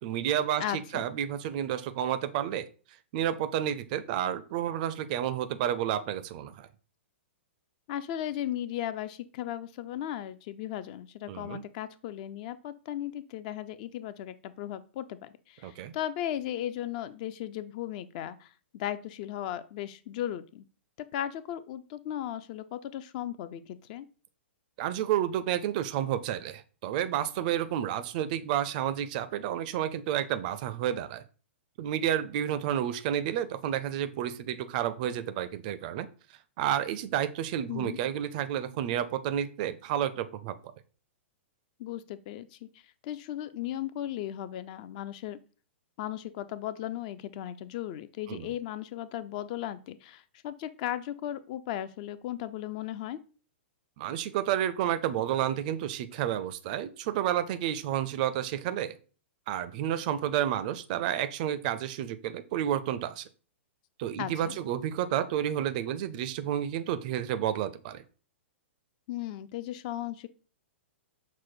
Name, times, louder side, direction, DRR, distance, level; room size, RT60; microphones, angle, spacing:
voice 1, 0.0-2.7 3.1-6.7 11.3-11.6 15.6-15.9 24.8-31.2 31.8-36.1 36.6-40.6 48.3-48.5 54.0-59.0 59.5-63.3 64.0-68.0, right 10 dB, 40° right, 11 dB, 0.4 m, -30 dB
voice 2, 0.6-1.1 7.9-20.6 21.1-24.1 37.7-38.0 41.8-45.4 46.0-53.2 64.2-64.6 69.1-70.3, left 12 dB, 40° left, 14 dB, 0.3 m, -36 dB
6.0 x 2.1 x 4.3 m, 0.37 s
figure-of-eight pair, 110°, 7 cm